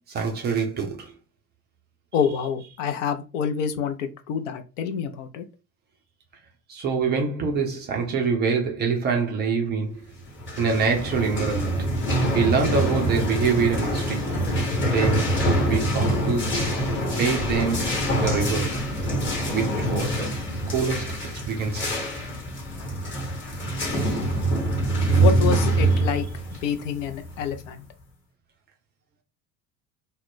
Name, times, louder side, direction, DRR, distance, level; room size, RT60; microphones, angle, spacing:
voice 1, 0.1-1.1 6.7-10.1 10.6-11.9 12.3-14.4 14.9-15.3 15.7-16.6 17.0-18.7 19.5-22.0, right 5 dB, 25° right, 0.4 m, -25 dB
voice 2, 2.1-5.4 25.2-26.3 26.5-27.9, left 7 dB, 55° left, 0.5 m, -27 dB
sound 1, 10.3-27.7, right 1 dB, 25° left, 1.1 m, -25 dB
2.3 x 2.0 x 3.6 m
figure-of-eight pair, 70°, 48 cm